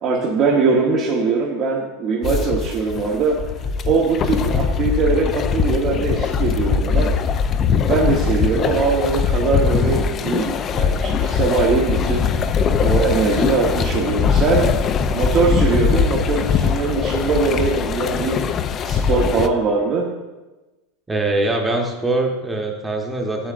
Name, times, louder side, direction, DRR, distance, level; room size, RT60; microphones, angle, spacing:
voice 1, 0.0-3.4 3.8-7.1 7.9-12.3 12.8-14.7 15.1-18.4 18.8-20.1, right 4 dB, 45° right, -2 dB, 0.9 m, -21 dB
sound 1, 2.2-19.5, left 6 dB, 35° left, 0.4 m, -21 dB
voice 2, 21.1-23.5, right 2 dB, 10° right, 1 dB, 1.0 m, -22 dB
8.6 x 6.5 x 2.5 m, 1.1 s
hypercardioid pair, 110°, 0 cm